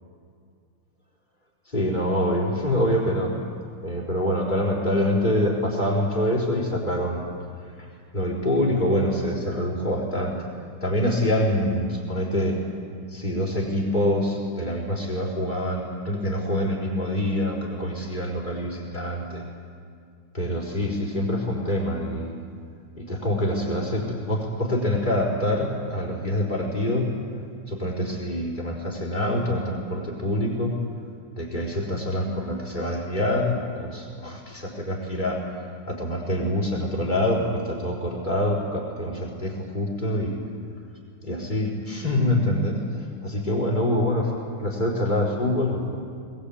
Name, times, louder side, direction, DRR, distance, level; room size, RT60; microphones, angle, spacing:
voice 1, 1.7-3.3 3.8-7.2 7.8-7.9 8.1-10.4 10.8-12.6 13.1-19.4 20.3-22.3 23.0-27.1 27.7-30.7 31.4-35.4 35.9-40.4 41.2-42.8 43.2-45.9, left 1 dB, 30° left, -3 dB, 4.4 m, -25 dB
20.5 x 20.5 x 8.5 m, 2.3 s
omnidirectional pair, 1.7 m